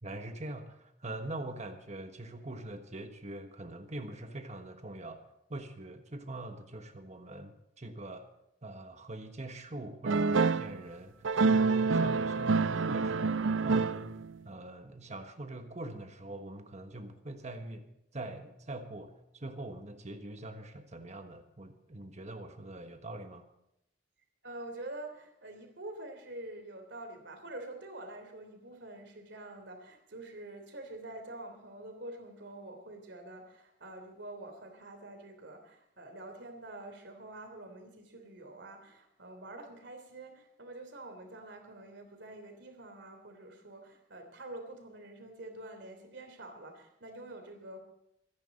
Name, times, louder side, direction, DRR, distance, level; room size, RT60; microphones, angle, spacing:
voice 1, 0.0-5.2 5.5-8.3 8.6-13.4 13.6-17.9 18.1-23.5, right 2 dB, 35° right, 6 dB, 1.3 m, -43 dB
sound 1, 10.0-10.7 11.2-14.3, right 4 dB, 85° right, 0.5 m, -27 dB
voice 2, 24.4-47.8, right 2 dB, 65° right, 5 dB, 3.2 m, -46 dB
25.5 x 10.5 x 4.2 m, 0.81 s
head